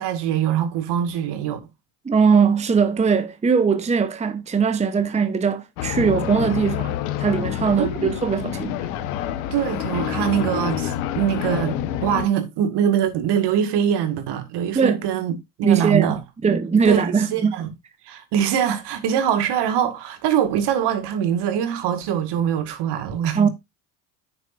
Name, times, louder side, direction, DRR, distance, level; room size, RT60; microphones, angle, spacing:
voice 1, 0.0-1.6 7.7-8.1 9.5-15.3 15.6-16.2 16.8-17.0 17.3-17.7 18.0-23.5, right 9 dB, 60° right, 2.0 m, -23 dB
voice 2, 2.0-8.8 14.7-15.0 15.6-16.2 16.4-17.5 23.4-23.5, right 6 dB, 15° right, 0.9 m, -20 dB
sound 1, 5.8-12.3, left 11 dB, 70° left, 1.2 m, -27 dB
9.8 x 6.9 x 2.6 m
hypercardioid pair, 80°, 47 cm